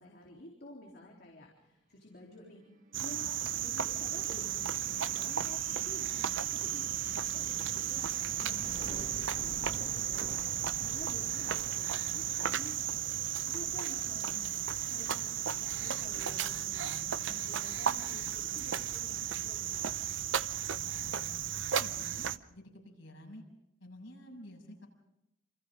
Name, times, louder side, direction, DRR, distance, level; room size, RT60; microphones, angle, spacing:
voice 1, 0.0-2.6 3.0-5.6 5.8-6.2 6.5-10.4 10.8-12.7 13.5-14.4 14.9-19.8, left 1 dB, 55° left, -1 dB, 3.7 m, -51 dB
sound 1, 2.3-15.8, right 1 dB, 40° right, 1.9 m, -52 dB
Cricket, 2.9-22.4, right 10 dB, 75° right, 0.7 m, -34 dB
voice 2, 8.3-8.8 13.9-14.7 20.8-23.4 23.8-24.9, left 1 dB, 90° left, -1 dB, 7.1 m, -51 dB
28.0 x 27.5 x 3.8 m, 0.88 s
head